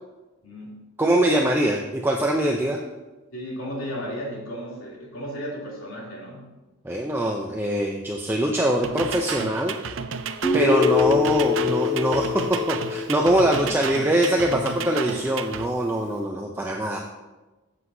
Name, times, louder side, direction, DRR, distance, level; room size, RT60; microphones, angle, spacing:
voice 1, 0.4-0.9 2.6-2.7 3.3-6.5, equal, 85° left, -4 dB, 3.0 m, -34 dB
voice 2, 1.0-2.8 6.8-9.8 10.5-17.0, right 1 dB, 10° right, 0 dB, 0.5 m, -23 dB
sound 1, 8.8-15.7, right 6 dB, 65° right, 0.5 m, -33 dB
Guitar, 10.4-14.4, left 5 dB, 35° left, 1.5 m, -25 dB
13.5 x 7.9 x 2.7 m, 1.1 s
head